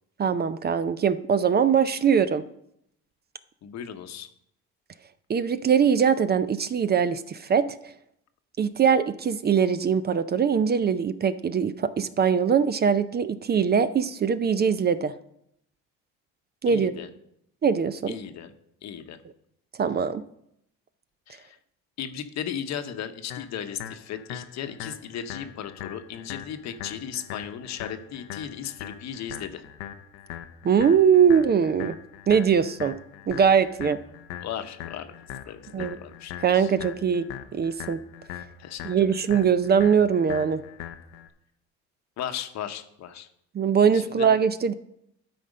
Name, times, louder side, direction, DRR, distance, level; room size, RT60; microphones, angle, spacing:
voice 1, 0.2-2.4 5.3-7.9 8.6-15.1 16.6-16.9 17.6-18.2 19.7-20.2 30.6-32.0 32.3-33.0 33.3-34.0 35.7-36.0 36.4-38.0 38.8-40.6 43.5-44.7, right 7 dB, 30° right, 13 dB, 0.5 m, -22 dB
voice 2, 3.6-4.3 16.7-17.1 18.1-18.5 18.8-19.2 21.3-21.6 22.0-29.6 34.4-35.1 35.4-36.7 38.6-38.9 42.2-43.3 43.9-44.3, left 9 dB, 60° left, 8 dB, 1.0 m, -36 dB
sound 1, 23.3-41.3, left 10 dB, 90° left, 0.7 m, -41 dB
12.0 x 4.3 x 5.2 m, 0.76 s
supercardioid pair, 80°, 31 cm